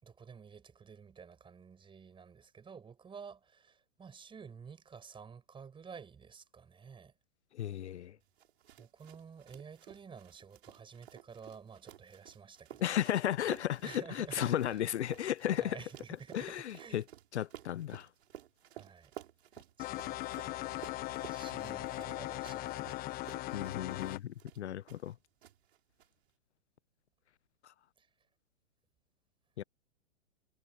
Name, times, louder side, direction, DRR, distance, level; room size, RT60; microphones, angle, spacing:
voice 1, 0.0-7.1 8.8-12.9 13.8-14.8 15.6-17.0 18.7-19.1 19.8-23.2 28.0-28.1, right 6 dB, 15° right, 5.8 m, -51 dB
voice 2, 7.5-8.2 12.8-15.8 16.3-17.0 17.3-18.1 23.5-25.1 27.6-27.7 29.6-29.7, left 11 dB, 70° left, 0.7 m, -34 dB
sound 1, 8.4-25.1 25.4-26.1, right 11 dB, 60° right, 5.1 m, -54 dB
sound 2, 19.8-24.2, left 17 dB, 25° left, 1.1 m, -39 dB
hypercardioid pair, 120°, 35 cm